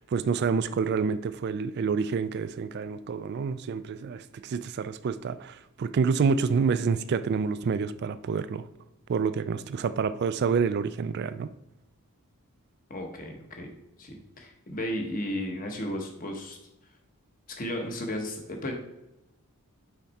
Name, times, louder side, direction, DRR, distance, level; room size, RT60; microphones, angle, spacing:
voice 1, 0.0-8.7 9.1-11.5, right 5 dB, 45° right, 0.3 m, -28 dB
voice 2, 12.9-13.7 14.0-16.6 17.6-18.8, left 1 dB, 40° left, 1.0 m, -34 dB
5.8 x 4.5 x 4.1 m
head